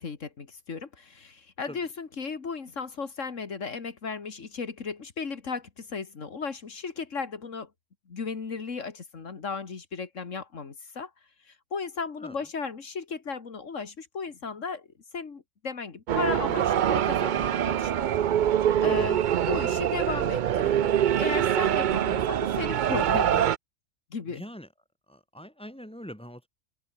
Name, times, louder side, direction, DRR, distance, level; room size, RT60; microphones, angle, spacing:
voice 1, 0.0-7.7 8.1-11.1 11.4-14.9 15.1-18.1 18.4-23.5 24.1-24.4, left 5 dB, 80° left, 2.3 m, -35 dB
sound 1, 16.1-23.6, right 10 dB, 60° right, 0.5 m, -24 dB
voice 2, 24.3-24.7 25.1-26.5, equal, 5° left, 5.6 m, -42 dB
omnidirectional pair, 1.3 m